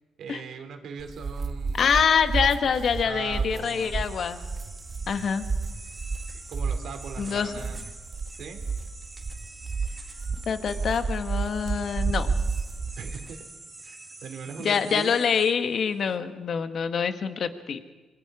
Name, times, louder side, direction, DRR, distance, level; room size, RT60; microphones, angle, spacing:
voice 1, 0.2-1.8 2.6-2.7 3.0-3.9 6.3-7.8 8.3-8.6 13.0-13.4 13.8-15.2, right 6 dB, 70° right, 6 dB, 3.1 m, -39 dB
sound 1, 1.0-13.3, right 4 dB, 40° right, 1.4 m, -31 dB
voice 2, 1.7-4.4 5.1-5.4 7.2-7.5 10.5-12.3 14.6-17.8, left 6 dB, 55° left, 9 dB, 1.4 m, -25 dB
sound 2, 3.3-16.2, right 2 dB, 20° right, 2.7 m, -46 dB
26.0 x 23.5 x 5.0 m, 1.2 s
cardioid pair, 90°, 0 cm